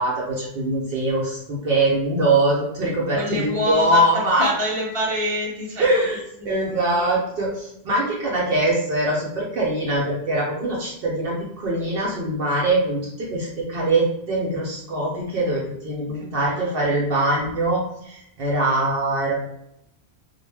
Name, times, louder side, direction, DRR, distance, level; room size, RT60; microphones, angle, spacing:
voice 1, 0.0-4.5 5.8-19.4, right 2 dB, 65° right, -3 dB, 0.8 m, -23 dB
voice 2, 3.1-6.0 6.4-7.2 16.1-17.2, equal, 35° right, -3 dB, 0.8 m, -27 dB
2.4 x 2.1 x 3.2 m, 0.81 s
omnidirectional pair, 1.1 m